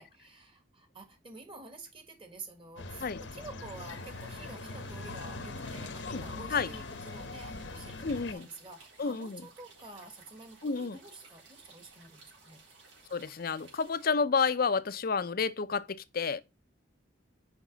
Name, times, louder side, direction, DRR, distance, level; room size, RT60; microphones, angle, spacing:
voice 1, 0.0-12.6, right 2 dB, 30° right, 1.7 m, -49 dB
sound 1, 2.8-8.3, left 3 dB, 75° left, 1.0 m, -41 dB
sound 2, 3.7-14.1, right 4 dB, 85° right, 4.0 m, -57 dB
voice 2, 6.0-6.7 8.0-8.5 9.0-9.4 10.6-11.0 13.1-16.4, left 5 dB, 50° left, 0.5 m, -30 dB
6.2 x 5.3 x 3.9 m
head